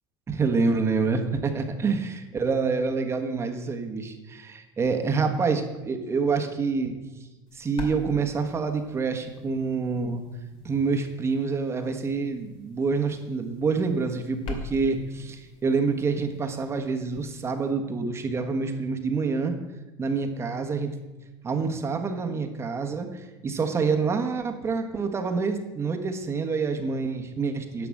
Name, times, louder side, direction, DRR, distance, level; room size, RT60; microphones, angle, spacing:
voice 1, 0.3-6.9 7.5-10.2 10.6-19.5 20.0-20.9 21.4-27.9, right 4 dB, 25° right, 5 dB, 1.4 m, -27 dB
sound 1, 7.5-17.7, left 3 dB, 55° left, 2.6 m, -44 dB
11.0 x 5.9 x 7.7 m, 1.1 s
supercardioid pair, 120°, 11 cm